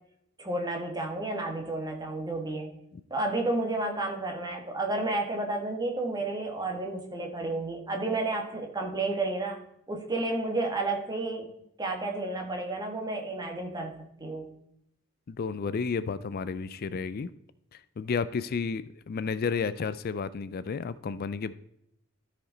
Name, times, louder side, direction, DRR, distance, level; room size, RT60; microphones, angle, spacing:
voice 1, 0.4-2.8 3.1-9.6 9.9-11.5 11.8-13.9 14.2-14.5, right 2 dB, 20° right, 2 dB, 1.5 m, -31 dB
voice 2, 15.3-17.3 17.7-21.5, left 5 dB, 45° left, 15 dB, 0.4 m, -32 dB
13.0 x 5.1 x 3.9 m, 0.77 s
head